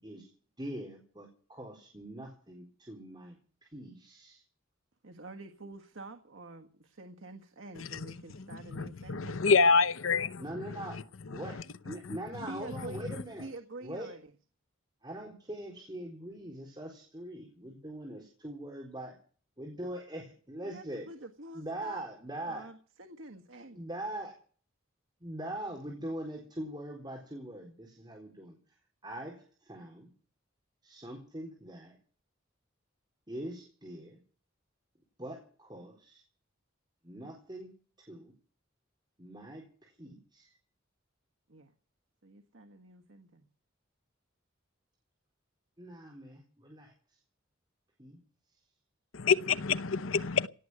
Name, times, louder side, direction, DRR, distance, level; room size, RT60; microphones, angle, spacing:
voice 1, 0.6-4.4 10.4-11.0 11.3-11.6 11.8-13.5 13.8-14.1 15.0-19.1 19.6-21.1 21.5-22.6 23.7-24.3 25.2-28.6 29.0-30.1 30.8-32.0 33.3-34.2 35.2-36.2 37.0-37.7 38.1-38.3 39.2-40.5 45.8-46.9 48.0-48.2, right 1 dB, 20° right, 4.1 m, -42 dB
voice 2, 5.0-9.7 12.4-14.3 20.6-22.0 22.4-23.8 41.5-41.7 42.2-43.5, right 2 dB, 75° right, 1.7 m, -47 dB
voice 3, 8.7-11.0 11.3-11.5 11.9-12.2 49.1-50.5, left 5 dB, 85° left, 0.8 m, -27 dB
17.5 x 8.0 x 9.7 m
head